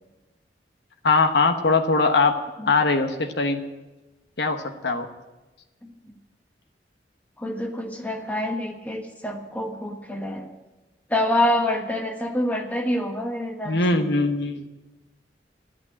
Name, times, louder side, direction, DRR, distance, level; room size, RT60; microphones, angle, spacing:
voice 1, 1.0-2.4 2.6-3.6 4.4-5.1 13.6-14.7, left 3 dB, 70° left, 5 dB, 1.1 m, -21 dB
voice 2, 7.4-10.5 11.1-14.1, left 1 dB, 10° left, 3 dB, 1.2 m, -27 dB
11.0 x 8.7 x 8.3 m, 1.1 s
head